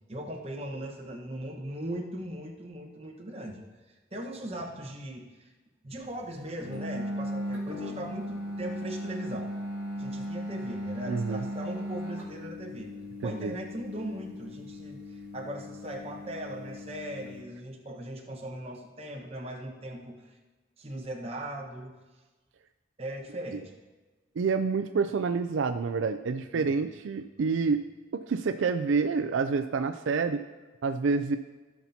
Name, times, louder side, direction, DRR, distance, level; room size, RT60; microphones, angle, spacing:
voice 1, 0.1-3.6 3.9-5.5 5.8-9.5 9.9-12.9 13.2-20.4 20.8-22.0 23.0-23.7 26.5-26.7, right 1 dB, 30° right, 0 dB, 1.2 m, -39 dB
sound 1, 6.6-17.4, equal, 10° right, 2.5 m, -37 dB
voice 2, 11.1-11.5 13.2-13.5 24.4-27.8 28.1-30.4 30.8-31.4, right 4 dB, 75° right, 9 dB, 0.4 m, -28 dB
16.5 x 5.9 x 2.8 m, 1.3 s
head